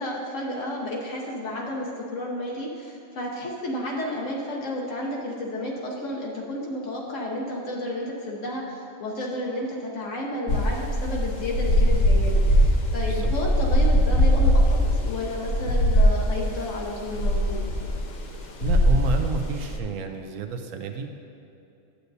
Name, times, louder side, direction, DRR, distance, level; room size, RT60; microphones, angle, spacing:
voice 1, 0.0-17.6, left 1 dB, 70° left, -3 dB, 1.3 m, -31 dB
sound 1, 10.5-19.8, equal, 45° left, 0.7 m, -21 dB
voice 2, 18.6-21.2, right 5 dB, 85° right, 6 dB, 1.1 m, -30 dB
12.0 x 8.0 x 2.7 m, 2.8 s
omnidirectional pair, 1.3 m